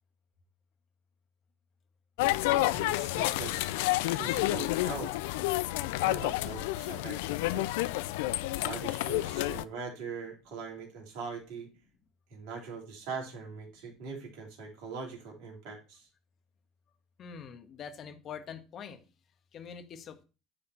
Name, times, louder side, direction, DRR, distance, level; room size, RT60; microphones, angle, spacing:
sound 1, 2.2-9.6, left 17 dB, 80° left, 0.4 m, -30 dB
voice 1, 2.7-3.7 4.1-5.1 6.0-7.7 8.5-11.7 12.3-16.1, right 5 dB, 70° right, 0 dB, 3.2 m, -41 dB
voice 2, 17.2-19.1 19.5-20.2, left 7 dB, 50° left, 7 dB, 1.5 m, -44 dB
9.3 x 4.3 x 4.5 m, 0.32 s
hypercardioid pair, 75°, 0 cm